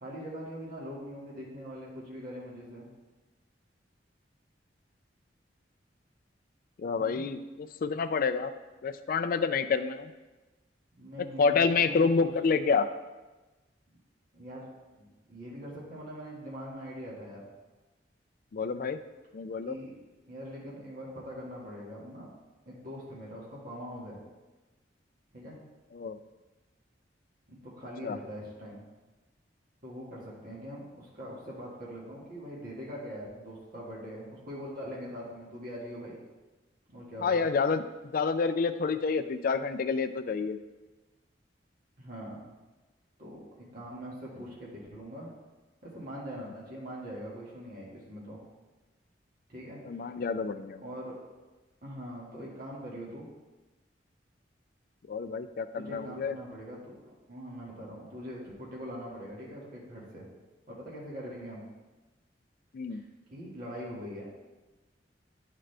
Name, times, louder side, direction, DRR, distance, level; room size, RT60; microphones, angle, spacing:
voice 1, 0.0-2.9 7.0-7.3 11.0-12.3 14.3-14.7 15.0-17.5 19.7-19.9 20.2-22.3 22.7-24.2 25.3-25.6 27.5-28.8 29.8-36.2 36.9-37.5 42.0-42.4 43.2-43.4 43.7-45.3 45.8-48.4 49.5-50.0 50.8-51.2 51.8-53.3 55.7-57.0 57.3-60.3 60.7-61.6 62.9-63.0 63.3-64.3, equal, 50° right, -6 dB, 1.8 m, -42 dB
voice 2, 6.8-8.5 8.8-10.1 11.4-12.9 18.5-19.0 19.3-19.7 25.9-26.2 28.0-28.2 37.2-37.8 38.1-40.6 49.9-50.8 55.1-56.4 62.7-63.0, left 5 dB, 50° left, 10 dB, 0.3 m, -28 dB
9.8 x 3.8 x 3.4 m, 1.2 s
head